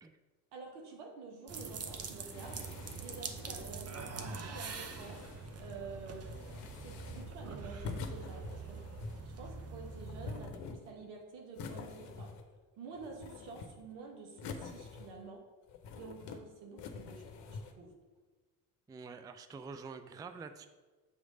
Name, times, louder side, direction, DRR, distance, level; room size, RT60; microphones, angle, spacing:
voice 1, 0.5-2.7 3.0-5.2 5.6-8.8 9.2-12.3 12.8-15.4 15.9-17.9, right 4 dB, 80° right, 1 dB, 1.3 m, -49 dB
sound 1, 1.5-10.5, right 4 dB, 35° right, 0.9 m, -44 dB
sound 2, 2.3-3.8 4.6-5.7 6.2-7.4 7.8-9.3 9.9-11.1 11.5-12.6 12.9-13.9 14.4-15.3 15.7-16.4 16.8-17.7, left 4 dB, 65° left, 0.9 m, -46 dB
voice 2, 18.9-20.7, right 4 dB, 10° right, 9 dB, 0.3 m, -47 dB
7.2 x 3.1 x 5.0 m, 1.3 s
hypercardioid pair, 55°, 45 cm